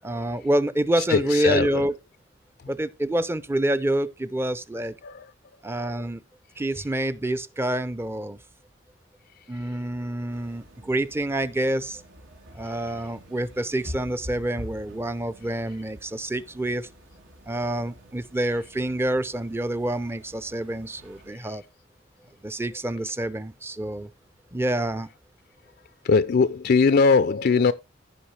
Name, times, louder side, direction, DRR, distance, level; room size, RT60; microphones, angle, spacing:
voice 1, 0.0-1.9 2.7-5.0 5.6-6.2 6.6-8.4 9.5-12.0 12.5-16.9 17.5-21.6 22.4-24.1 24.5-25.1, right 1 dB, 10° right, 0.5 m, -27 dB
voice 2, 1.1-1.7 5.0-5.2 26.0-27.7, left 4 dB, 50° left, 0.4 m, -20 dB
sound 1, 10.3-21.3, equal, 85° right, 3.2 m, -46 dB
15.5 x 5.4 x 3.3 m
head